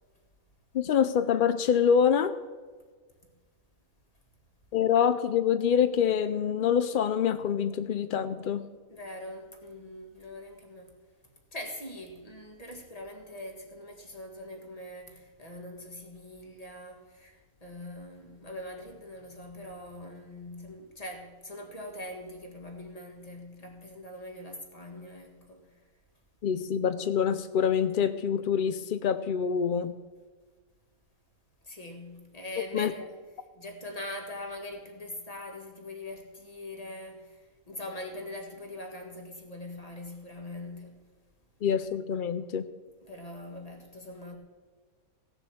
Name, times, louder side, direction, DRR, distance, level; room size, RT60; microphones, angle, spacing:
voice 1, 0.7-2.3 4.7-8.7 26.4-29.9 32.7-32.9 41.6-42.7, left 7 dB, 70° left, 0.5 m, -26 dB
voice 2, 8.9-11.0 11.5-25.7 31.6-33.2 33.5-41.0 43.0-44.4, left 1 dB, 25° left, 1.9 m, -42 dB
16.5 x 7.1 x 7.1 m
omnidirectional pair, 1.5 m